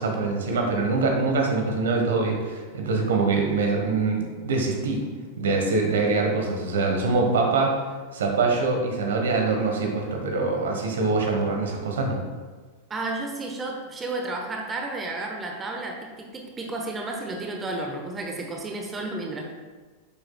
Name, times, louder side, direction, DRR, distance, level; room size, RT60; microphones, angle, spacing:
voice 1, 0.0-5.0 5.4-7.8 8.1-12.2, right 3 dB, 60° right, 2 dB, 1.4 m, -24 dB
voice 2, 12.9-19.4, right 2 dB, 20° right, 1 dB, 1.1 m, -32 dB
10.0 x 7.7 x 2.4 m, 1.4 s
figure-of-eight pair, 90°, 0 cm